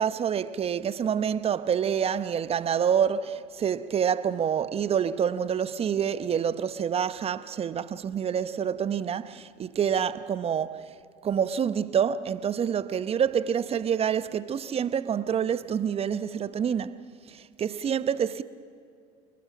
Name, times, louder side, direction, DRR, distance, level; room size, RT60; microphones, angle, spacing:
voice 1, 0.0-10.9 11.2-17.0 17.3-18.4, right 8 dB, 35° right, 0.9 m, -27 dB
28.0 x 21.0 x 6.2 m
hypercardioid pair, 70°, 17 cm